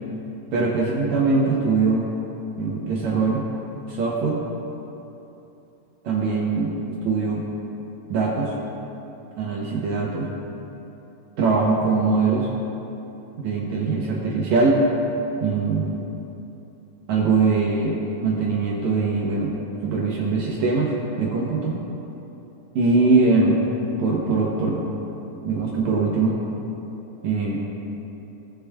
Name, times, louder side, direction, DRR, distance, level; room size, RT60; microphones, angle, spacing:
voice 1, 0.5-2.1 2.6-3.4 3.9-4.4 6.0-7.5 8.1-8.5 9.4-10.3 11.4-12.5 13.4-14.8 15.4-16.0 17.1-21.8 22.7-23.6 24.0-24.8 25.4-26.4 27.2-27.6, right 4 dB, 75° right, -3 dB, 1.7 m, -22 dB
18.0 x 6.7 x 2.3 m, 2.9 s
omnidirectional pair, 4.4 m